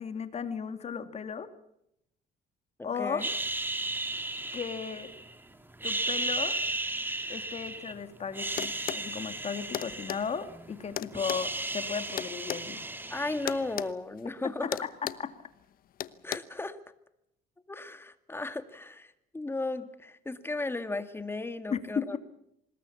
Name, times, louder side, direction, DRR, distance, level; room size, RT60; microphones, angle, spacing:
voice 1, 0.0-1.5 2.8-3.2 4.5-5.1 5.8-6.6 7.3-12.8 14.6-15.3 21.7-22.2, left 6 dB, 40° left, 9 dB, 2.5 m, -35 dB
voice 2, 2.8-3.3 13.1-14.8 16.2-16.8 17.7-22.2, left 2 dB, 15° left, 10 dB, 2.1 m, -35 dB
sound 1, 3.2-5.3 5.7-7.9 8.3-10.7 10.9-13.8, right 2 dB, 10° right, 2.8 m, -35 dB
sound 2, 8.6-9.1 9.7-10.2 11.0-12.7 13.5-13.9 14.2-14.4 14.7-15.3 16.0-16.4, left 11 dB, 60° left, 1.1 m, -35 dB
25.5 x 20.5 x 7.2 m, 0.80 s
cardioid pair, 110°, 17 cm